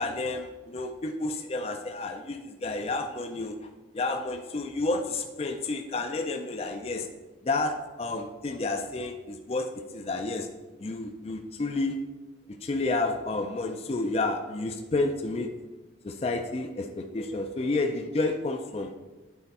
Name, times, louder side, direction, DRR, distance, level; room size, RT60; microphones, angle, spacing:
voice 1, 0.0-3.6 3.9-7.1 7.4-10.5 10.8-12.0 12.5-15.5 16.0-18.9, left 2 dB, 35° left, 4 dB, 0.4 m, -30 dB
9.1 x 4.4 x 4.2 m, 1.2 s
head